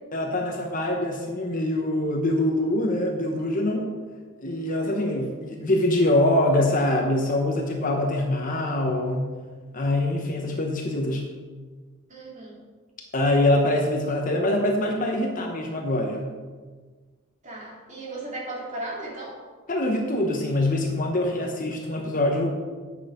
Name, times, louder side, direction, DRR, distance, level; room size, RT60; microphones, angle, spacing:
voice 1, 0.1-3.9 4.4-9.3 9.7-11.3 13.1-16.3 19.7-22.5, left 1 dB, 40° left, 1 dB, 0.9 m, -24 dB
voice 2, 4.8-5.3 12.1-12.6 17.4-19.4, right 2 dB, 35° right, -3 dB, 2.2 m, -36 dB
9.1 x 6.2 x 5.0 m, 1.4 s
head